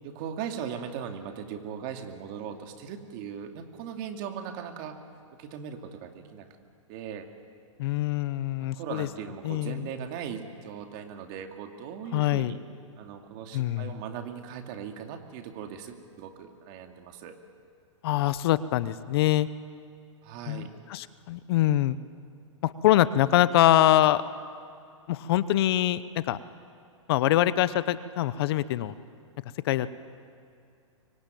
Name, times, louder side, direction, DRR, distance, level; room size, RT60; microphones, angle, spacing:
voice 1, 0.0-5.0 5.4-6.5 6.9-7.3 8.6-12.6 13.0-17.4 20.2-20.7, right 8 dB, 40° right, 5 dB, 2.5 m, -39 dB
voice 2, 7.8-9.1 9.4-9.9 12.1-12.5 13.5-14.0 18.0-19.5 20.5-22.0 22.6-24.2 25.1-26.4 27.1-28.9 29.6-29.9, left 13 dB, 50° left, 15 dB, 0.9 m, -24 dB
25.5 x 24.0 x 9.2 m, 2.5 s
hypercardioid pair, 145°, 17 cm